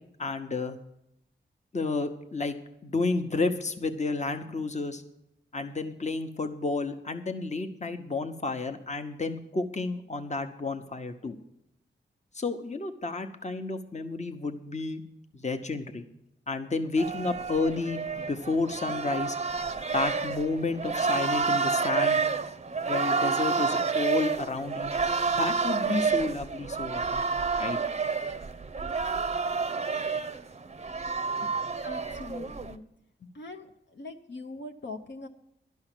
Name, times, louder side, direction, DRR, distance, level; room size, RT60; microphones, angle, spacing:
voice 1, 0.2-0.8 1.7-2.6 2.8-5.0 5.5-11.4 12.3-15.0 15.3-16.0 16.5-19.4 19.9-22.2 22.9-24.9 25.4-27.3 27.6-27.8, left 3 dB, 35° left, 7 dB, 1.0 m, -31 dB
sound 1, 17.0-32.8, right 5 dB, 35° right, 0.6 m, -29 dB
voice 2, 31.8-32.8 33.3-35.3, left 2 dB, 65° left, 3 dB, 0.9 m, -42 dB
12.0 x 5.6 x 9.1 m, 0.80 s
cardioid pair, 60°, 20 cm